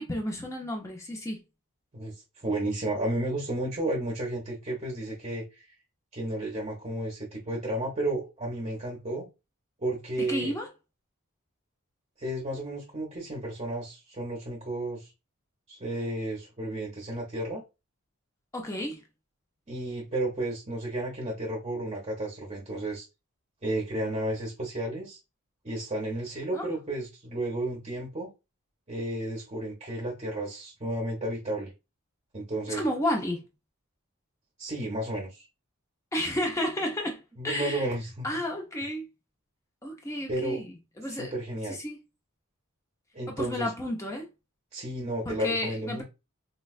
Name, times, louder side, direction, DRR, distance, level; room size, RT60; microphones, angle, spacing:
voice 1, 0.0-1.4 10.2-10.7 18.5-19.0 26.5-26.7 32.7-33.5 36.1-37.9 38.2-39.1 39.8-41.3 41.7-42.0 43.3-44.3 45.3-46.0, left 1 dB, 15° left, 0.5 m, -32 dB
voice 2, 1.9-5.6 6.1-9.3 9.8-10.5 12.2-15.1 15.7-17.6 19.7-23.0 23.6-25.2 25.6-28.3 28.9-31.7 32.3-32.9 34.6-35.5 37.4-38.3 40.3-40.6 41.1-41.8 43.1-43.7 44.7-46.0, right 1 dB, 30° right, 0.8 m, -32 dB
4.1 x 2.2 x 2.3 m
head